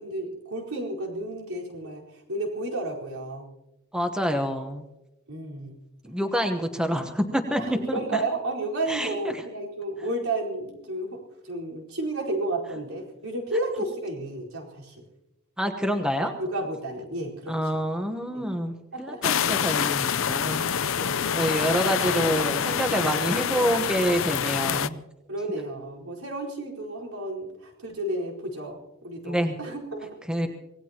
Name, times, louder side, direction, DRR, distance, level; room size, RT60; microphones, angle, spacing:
voice 1, 0.0-2.0 2.3-3.5 5.3-5.8 7.6-7.7 7.9-11.2 11.4-15.0 16.4-17.8 18.3-18.4 18.9-19.3 21.0-21.3 23.0-23.3 25.3-30.5, right 2 dB, 80° right, -3 dB, 4.5 m, -32 dB
voice 2, 3.9-4.8 6.0-8.2 8.9-9.4 15.6-16.3 17.5-20.7 21.3-25.0 29.2-29.6 30.3-30.5, equal, 5° right, 5 dB, 1.1 m, -27 dB
sound 1, 19.2-24.9, left 8 dB, 65° left, 0.6 m, -26 dB
25.0 x 18.5 x 3.0 m, 0.94 s
head